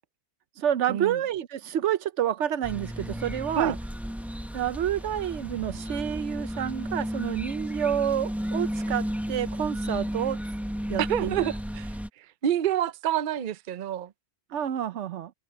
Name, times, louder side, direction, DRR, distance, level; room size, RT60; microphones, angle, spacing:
voice 1, 0.6-3.8 4.5-10.4 10.9-11.4 14.5-15.3, right 10 dB, 75° right, 1.0 m, -29 dB
sound 1, 2.6-12.1, equal, ahead, 0.8 m, -33 dB
voice 2, 11.0-11.8 12.2-14.1, right 10 dB, 50° right, 0.7 m, -28 dB
omnidirectional pair, 1.2 m